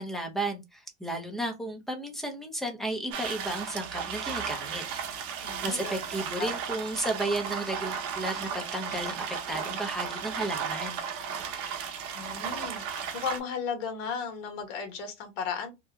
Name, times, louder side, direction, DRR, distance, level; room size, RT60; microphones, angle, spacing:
voice 1, 0.0-4.8 5.6-11.0, right 1 dB, ahead, 0.6 m, -33 dB
sound 1, 3.1-13.4, right 7 dB, 45° right, 0.9 m, -35 dB
voice 2, 5.4-6.0 6.4-6.5 12.1-15.7, left 6 dB, 55° left, 1.4 m, -35 dB
2.8 x 2.2 x 3.6 m
supercardioid pair, 130°, 37 cm